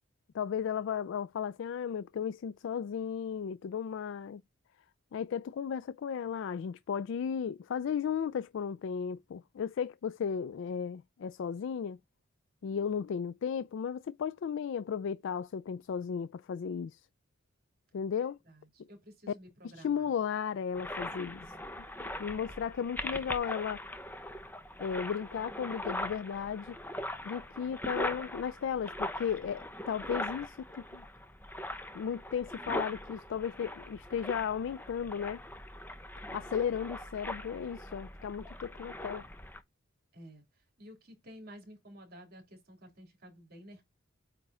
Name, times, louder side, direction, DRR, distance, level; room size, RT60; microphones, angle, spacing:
voice 1, 0.3-4.4 5.1-12.0 12.6-17.0 17.9-18.4 19.6-21.5 22.2-23.8 24.8-26.8 27.2-31.0 31.9-35.4 36.3-39.3, left 7 dB, 60° left, 0.3 m, -35 dB
voice 2, 18.5-20.1 40.1-40.4 40.8-43.8, equal, 50° right, 3.5 m, -52 dB
sound 1, 20.7-39.6, left 1 dB, 10° left, 0.9 m, -41 dB
8.8 x 3.6 x 4.2 m
head